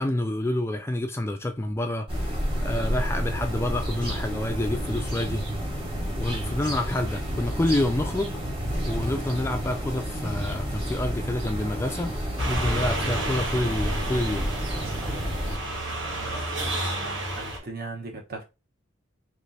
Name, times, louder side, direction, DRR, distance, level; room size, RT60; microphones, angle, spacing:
voice 1, 0.0-5.4 6.2-8.4 8.9-12.1 12.5-14.5, left 1 dB, 15° left, 0.3 m, -28 dB
sound 1, 2.1-15.6, equal, 25° right, 1.6 m, -30 dB
sound 2, 12.4-17.6, right 1 dB, 75° right, 1.9 m, -31 dB
voice 2, 16.2-18.4, right 3 dB, 50° right, 1.1 m, -39 dB
3.3 x 3.0 x 4.1 m
head